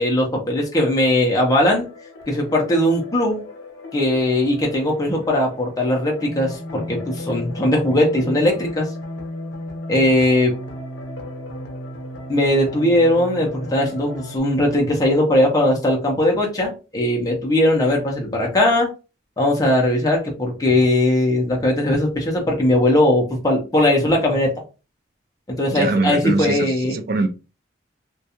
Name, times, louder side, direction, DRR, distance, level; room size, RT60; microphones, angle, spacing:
voice 1, 0.0-1.9 2.3-3.4 3.9-8.9 9.9-10.5 12.3-18.9 19.4-24.5 25.5-26.9, left 1 dB, 20° left, 0.6 m, -19 dB
sound 1, 1.4-14.4, left 1 dB, 80° left, 0.7 m, -35 dB
voice 2, 25.7-27.3, right 3 dB, 50° right, 0.3 m, -22 dB
2.4 x 2.2 x 2.8 m
head